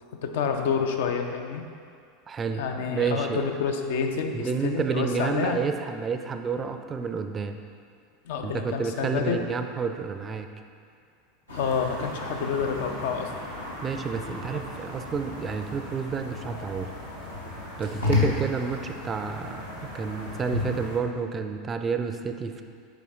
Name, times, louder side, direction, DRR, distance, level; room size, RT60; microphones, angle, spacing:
voice 1, 0.2-1.6 2.6-5.6 8.2-9.4 11.5-13.3 14.4-14.6, left 6 dB, 60° left, 5 dB, 0.5 m, -28 dB
voice 2, 2.3-3.4 4.3-7.6 8.4-10.5 13.8-16.9 17.8-22.6, right 5 dB, 25° right, 7 dB, 0.4 m, -30 dB
sound 1, 11.5-21.0, left 2 dB, 75° left, 1.2 m, -33 dB
7.0 x 4.9 x 3.7 m, 2.3 s
figure-of-eight pair, 80°, 0 cm